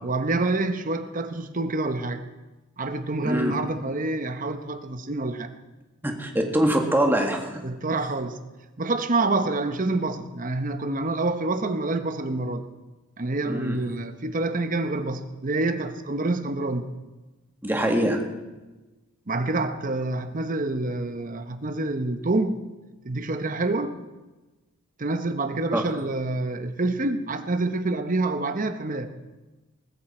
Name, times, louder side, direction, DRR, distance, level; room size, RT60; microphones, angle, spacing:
voice 1, 0.0-2.3 2.8-5.5 7.6-8.4 8.8-12.7 13.2-16.9 19.3-22.6 23.0-23.9 25.0-29.1, right 2 dB, 40° right, 0.9 m, -27 dB
voice 2, 3.2-3.6 6.0-7.6 13.5-13.8 17.6-18.3 25.7-25.8, right 1 dB, 10° right, 1.8 m, -23 dB
19.5 x 14.0 x 4.4 m
head